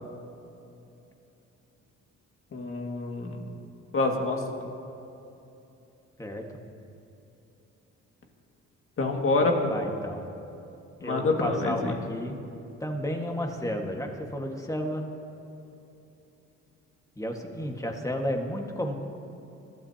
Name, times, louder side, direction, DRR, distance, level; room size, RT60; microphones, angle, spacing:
voice 1, 2.5-3.5 3.9-4.4 9.0-9.5 11.0-12.0, left 3 dB, 45° left, 2 dB, 2.1 m, -27 dB
voice 2, 9.3-10.3 11.0-12.4 12.8-15.1 17.2-18.9, equal, 10° left, 2 dB, 1.7 m, -32 dB
23.5 x 13.0 x 2.9 m, 2.9 s
cardioid pair, 90°, 30 cm